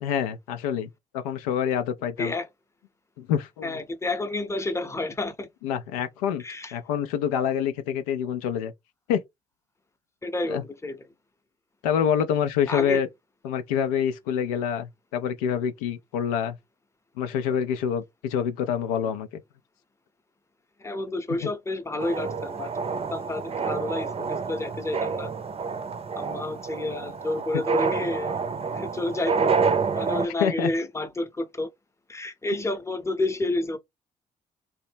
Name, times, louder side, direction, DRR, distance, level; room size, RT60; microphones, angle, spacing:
voice 1, 0.0-2.3 3.2-3.7 5.6-6.4 6.7-8.7 9.1-9.2 10.5-10.6 11.8-13.1 13.4-16.6 17.2-19.3 21.4-21.5 30.4-30.7, left 8 dB, 75° left, 0.4 m, -26 dB
voice 2, 3.6-5.5 6.4-6.7 10.2-11.0 12.7-13.0 20.8-22.7 23.1-25.3 26.2-28.4 28.7-29.5 29.9-31.7 32.1-33.8, left 2 dB, 15° left, 0.7 m, -30 dB
sound 1, 22.0-30.3, right 5 dB, 30° right, 0.6 m, -28 dB
2.8 x 2.1 x 3.3 m
figure-of-eight pair, 40°, 19 cm